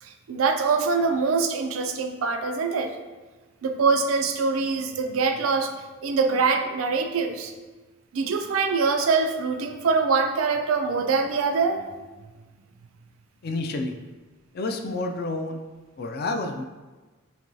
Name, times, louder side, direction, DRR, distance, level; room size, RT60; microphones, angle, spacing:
voice 1, 0.0-3.0 3.6-5.7 6.0-7.5 8.1-11.9, right 4 dB, 85° right, 6 dB, 0.4 m, -24 dB
voice 2, 13.4-13.9 14.5-15.6 16.0-16.7, left 2 dB, 50° left, 5 dB, 0.3 m, -29 dB
5.8 x 2.2 x 2.6 m, 1.3 s
head